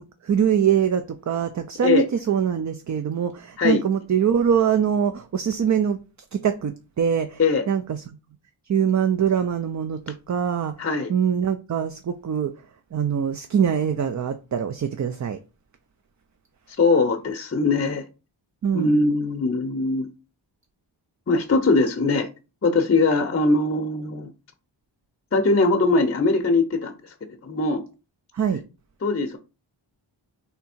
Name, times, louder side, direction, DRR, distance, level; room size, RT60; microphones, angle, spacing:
voice 1, 0.2-6.0 6.3-7.4 7.7-8.0 8.7-12.5 12.9-15.4 18.6-19.0 28.3-28.6, right 8 dB, 40° right, 0.4 m, -23 dB
voice 2, 10.8-11.1 16.8-18.0 18.7-20.1 21.3-22.3 22.6-24.3 25.3-27.1 27.4-27.8 29.0-29.4, left 3 dB, 30° left, 0.6 m, -21 dB
3.4 x 2.7 x 4.3 m
cardioid pair, 45°, 47 cm